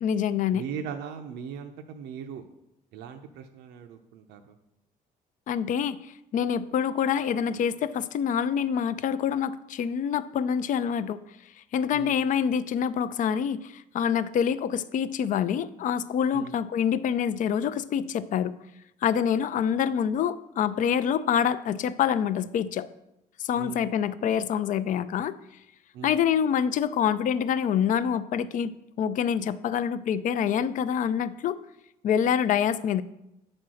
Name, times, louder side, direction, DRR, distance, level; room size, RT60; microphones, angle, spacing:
voice 1, 0.0-0.6 5.5-6.0 6.3-11.2 11.7-18.5 19.0-22.9 23.4-25.3 26.0-28.7 29.0-31.6 32.0-33.0, left 8 dB, 50° left, 15 dB, 0.4 m, -26 dB
voice 2, 0.5-2.5 2.9-4.6 11.9-12.2 16.3-16.6 23.5-23.9 25.9-26.2, right 7 dB, 85° right, 6 dB, 0.7 m, -39 dB
8.5 x 4.3 x 6.3 m, 0.86 s
cardioid pair, 110°, 17 cm